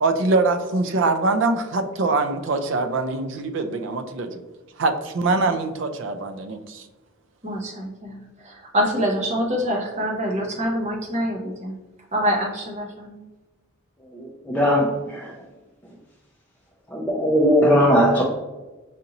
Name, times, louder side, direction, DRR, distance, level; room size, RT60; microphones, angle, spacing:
voice 1, 0.0-4.4 4.8-6.8, right 3 dB, 60° right, 7 dB, 0.4 m, -23 dB
voice 2, 7.4-11.7 12.1-13.2, equal, 30° right, 0 dB, 0.7 m, -25 dB
voice 3, 14.1-15.3 16.9-18.2, equal, 10° left, -5 dB, 0.5 m, -19 dB
5.0 x 2.6 x 2.8 m, 1.1 s
head